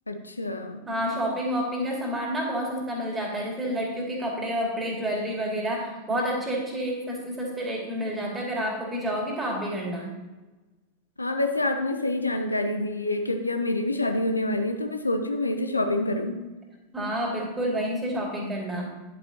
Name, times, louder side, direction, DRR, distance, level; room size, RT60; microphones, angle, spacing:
voice 1, 0.1-0.8 11.2-16.4, left 2 dB, 80° left, 7 dB, 0.7 m, -27 dB
voice 2, 0.9-10.1 16.9-18.9, equal, 15° right, -2 dB, 2.5 m, -29 dB
10.0 x 8.8 x 2.9 m, 1.2 s
figure-of-eight pair, 90°, 0 cm